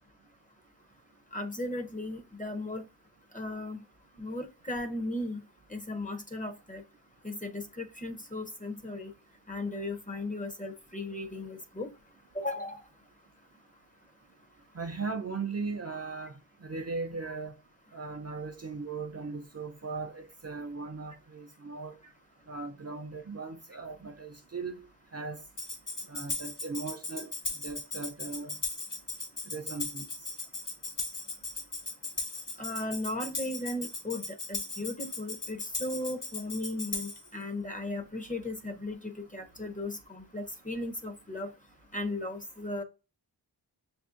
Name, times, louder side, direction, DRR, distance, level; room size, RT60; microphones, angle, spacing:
voice 1, 1.3-2.8 3.3-3.8 4.2-5.4 5.7-6.8 7.2-9.1 9.5-11.9 12.3-12.8 32.6-41.5 41.9-42.8, left 2 dB, 20° left, 0.6 m, -36 dB
voice 2, 14.7-16.3 16.6-17.5 17.9-22.0 22.5-24.8 25.1-25.4 26.1-27.3 27.6-28.5 29.5-30.1, right 4 dB, 35° right, 0.5 m, -38 dB
Tambourine, 25.6-37.3, left 3 dB, 45° left, 1.0 m, -37 dB
6.3 x 2.6 x 2.4 m
wide cardioid pair, 50°, 43 cm